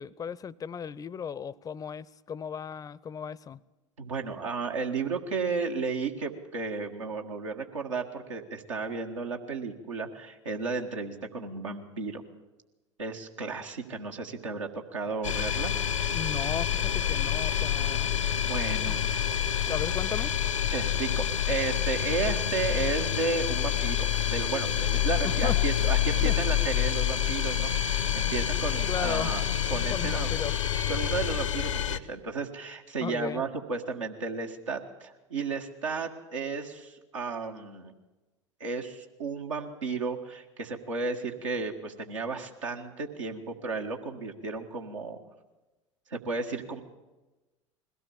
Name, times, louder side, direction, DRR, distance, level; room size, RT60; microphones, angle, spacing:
voice 1, 0.0-3.6 16.1-18.1 18.9-19.0 19.7-20.3 25.2-25.6 26.2-26.4 28.7-29.3 29.9-30.5 33.0-33.4, left 7 dB, 20° left, 0.6 m, -36 dB
voice 2, 4.0-12.2 13.0-15.7 18.4-19.2 20.7-29.4 29.7-30.3 30.9-37.9 38.6-45.2 46.1-46.8, right 4 dB, 75° right, 1.7 m, -33 dB
sound 1, 15.2-32.0, left 10 dB, 80° left, 0.8 m, -27 dB
21.5 x 17.0 x 7.2 m
figure-of-eight pair, 75°, 16 cm